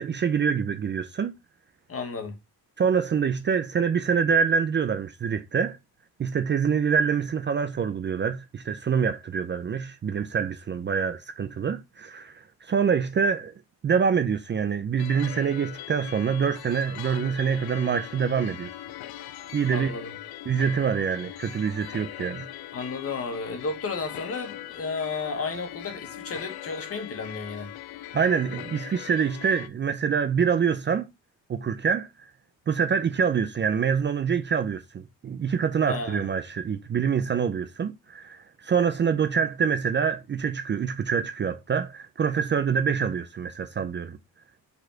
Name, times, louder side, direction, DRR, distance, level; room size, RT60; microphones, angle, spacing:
voice 1, 0.0-1.3 2.8-5.8 6.2-13.5 13.8-18.7 19.5-19.9 20.5-22.5 28.1-31.1 31.5-32.3 32.7-44.2, right 6 dB, 30° right, 0.5 m, -25 dB
voice 2, 1.9-2.4 19.7-20.1 22.7-27.7 35.9-36.3, left 4 dB, 40° left, 1.6 m, -33 dB
sound 1, 15.0-29.7, left 12 dB, 85° left, 0.7 m, -40 dB
5.2 x 4.3 x 4.4 m
cardioid pair, 135°, 37 cm